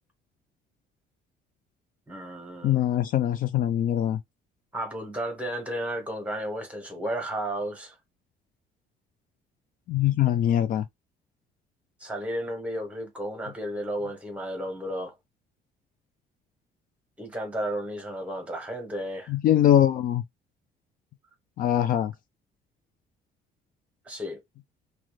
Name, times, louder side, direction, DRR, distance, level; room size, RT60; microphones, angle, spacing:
voice 1, 2.1-2.8 4.7-7.9 12.0-15.1 17.2-19.3 24.0-24.4, equal, 10° right, 1.3 m, -33 dB
voice 2, 2.6-4.2 9.9-10.8 19.3-20.2 21.6-22.1, left 11 dB, 55° left, 0.4 m, -22 dB
2.5 x 2.3 x 3.1 m
cardioid pair, 110°, 17 cm